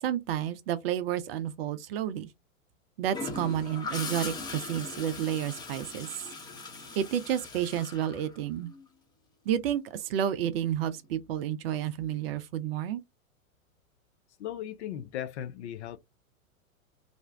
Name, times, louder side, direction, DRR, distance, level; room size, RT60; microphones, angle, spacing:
voice 1, 0.0-2.3 3.0-6.1 7.0-8.7 9.5-13.0, right 10 dB, 45° right, 0.5 m, -30 dB
Gurgling / Toilet flush, 3.1-8.9 10.9-11.1, left 4 dB, 10° left, 0.5 m, -40 dB
voice 2, 14.4-16.0, left 11 dB, 55° left, 0.6 m, -37 dB
2.5 x 2.1 x 3.3 m
hypercardioid pair, 105°, 42 cm